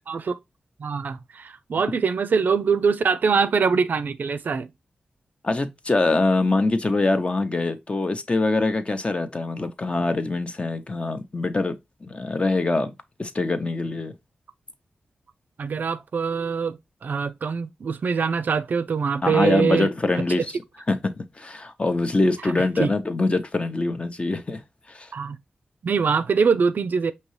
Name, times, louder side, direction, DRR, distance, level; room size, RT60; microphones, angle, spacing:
voice 1, 0.1-0.4 0.8-4.7 15.6-19.9 20.4-20.5 22.8-22.9 25.1-25.4 25.8-27.1, right 5 dB, 65° right, 0.4 m, -23 dB
voice 2, 5.4-12.9 13.2-14.1 19.2-20.5 20.9-24.6 24.9-25.1, left 2 dB, 35° left, 0.7 m, -24 dB
5.2 x 2.8 x 3.1 m
cardioid pair, 55°, 3 cm